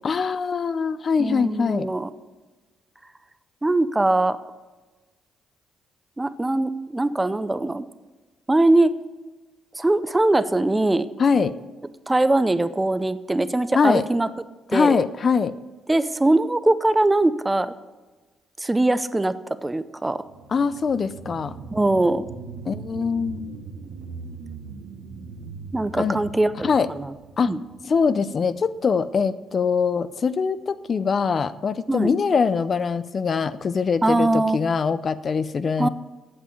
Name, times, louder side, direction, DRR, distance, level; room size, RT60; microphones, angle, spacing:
voice 1, 0.0-1.9 11.2-11.5 13.7-14.0 14.7-15.5 20.5-21.6 22.7-23.6 26.0-26.2 26.6-26.9 27.4-27.5 27.8-35.9, left 5 dB, 45° left, 14 dB, 0.5 m, -23 dB
voice 2, 1.2-2.1 3.6-4.4 6.2-7.9 8.5-8.9 9.8-11.1 12.1-14.3 14.7-15.0 15.9-17.7 18.6-19.3 19.6-20.2 21.7-22.2 25.7-27.1 27.4-27.6 31.9-32.1 34.0-34.6 35.8-35.9, right 2 dB, 15° right, 13 dB, 0.5 m, -21 dB
sound 1, 20.2-29.2 29.6-29.7, right 4 dB, 80° right, 1.2 m, -40 dB
8.6 x 7.4 x 8.5 m, 1.3 s
cardioid pair, 90°, 0 cm